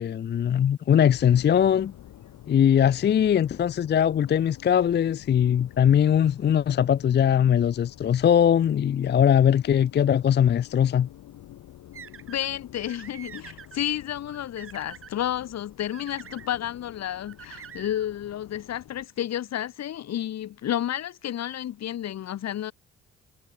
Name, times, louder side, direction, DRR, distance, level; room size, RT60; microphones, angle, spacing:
voice 1, 0.0-1.9 2.5-11.1, left 9 dB, 35° left, 0.5 m, -21 dB
sound 1, 1.1-19.1, left 13 dB, 80° left, 4.4 m, -49 dB
sound 2, 11.9-12.5 12.9-13.8 14.3-15.1 15.9-16.5 17.3-18.1, right 8 dB, 45° right, 1.7 m, -45 dB
voice 2, 12.3-22.7, left 11 dB, 60° left, 1.1 m, -31 dB
cardioid pair, 90°, 30 cm